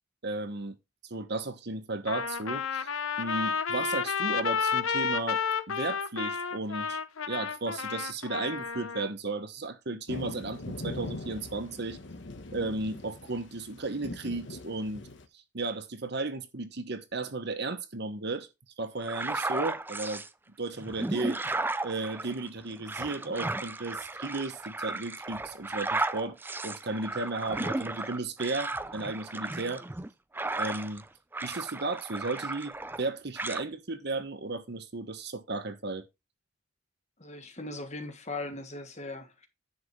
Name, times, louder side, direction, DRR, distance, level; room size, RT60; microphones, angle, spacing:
voice 1, 0.2-0.7 1.1-2.9 3.2-5.4 5.7-7.0 7.3-12.0 12.5-15.1 15.5-18.5 18.8-20.2 20.6-21.4 21.8-26.4 26.6-29.8 30.6-31.0 31.4-36.1, right 3 dB, 55° right, 1.2 m, -34 dB
Trumpet, 2.1-9.1, left 6 dB, 85° left, 0.8 m, -31 dB
sound 1, 10.1-15.2, left 2 dB, 60° left, 1.2 m, -41 dB
sound 2, 19.0-20.3 20.8-31.0 31.3-33.1 33.4-33.6, right 2 dB, 10° right, 0.4 m, -34 dB
voice 2, 37.2-39.5, left 2 dB, 35° left, 1.6 m, -39 dB
10.0 x 7.7 x 3.2 m
head